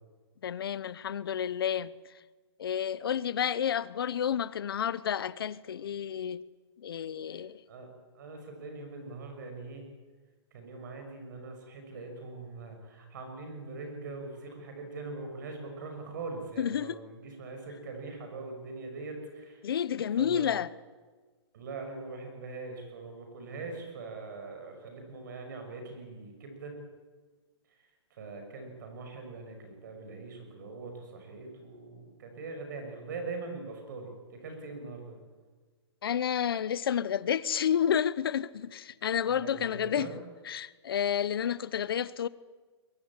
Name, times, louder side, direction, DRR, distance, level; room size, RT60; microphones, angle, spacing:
voice 1, 0.4-1.9 2.6-6.4 6.8-7.6 16.6-17.0 19.6-20.7 36.0-40.1 40.4-42.3, left 9 dB, 55° left, 0.9 m, -30 dB
voice 2, 8.1-9.9 10.5-19.6 20.2-20.5 21.5-26.8 28.1-35.2 39.3-40.1, right 3 dB, 40° right, 6.1 m, -42 dB
22.5 x 17.0 x 9.7 m
hypercardioid pair, 175°, 15 cm